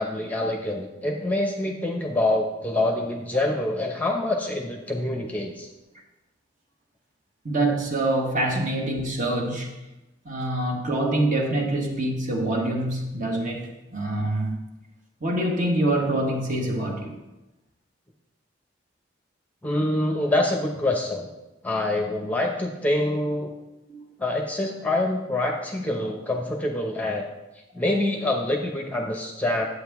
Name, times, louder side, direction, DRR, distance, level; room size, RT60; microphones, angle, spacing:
voice 1, 0.0-5.7 8.5-8.6 19.6-21.3 21.6-23.5 24.2-27.3 27.7-29.6, left 1 dB, 10° left, 2 dB, 0.8 m, -26 dB
voice 2, 7.4-9.8 10.2-14.6 15.2-17.1 23.9-24.1 25.5-25.6 26.0-26.1, right 1 dB, 45° right, 0 dB, 1.5 m, -25 dB
9.6 x 8.2 x 3.5 m, 1.0 s
head